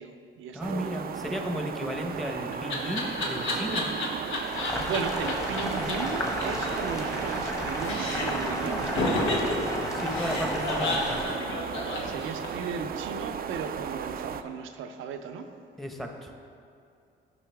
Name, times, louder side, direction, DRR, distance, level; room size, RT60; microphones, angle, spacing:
voice 1, 0.0-1.1 4.7-9.7 10.5-10.7 12.0-15.5, right 5 dB, 90° right, 7 dB, 0.6 m, -36 dB
voice 2, 0.5-3.9 9.9-11.2 15.8-16.3, equal, ahead, 2 dB, 1.0 m, -34 dB
sound 1, 0.6-14.4, right 7 dB, 50° right, 0.4 m, -35 dB
Laughter, 1.9-5.0 5.3-5.4 5.6-5.7 5.9-6.0 6.2-7.5 7.8-8.4 8.9-12.7, left 2 dB, 85° left, 1.4 m, -31 dB
Boiling, 4.4-11.2, left 1 dB, 15° left, 1.5 m, -33 dB
12.0 x 5.6 x 3.5 m, 2.5 s
cardioid pair, 90°, 20 cm